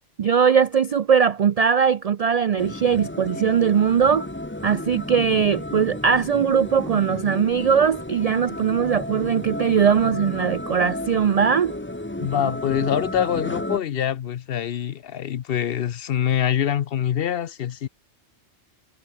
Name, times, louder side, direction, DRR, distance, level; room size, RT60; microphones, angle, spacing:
voice 1, 0.2-4.3 4.6-11.7, right 7 dB, 65° right, 0.3 m, -20 dB
sound 1, 2.6-13.8, left 1 dB, 10° left, 1.2 m, -32 dB
voice 2, 12.2-17.9, left 9 dB, 60° left, 0.8 m, -25 dB
omnidirectional pair, 1.2 m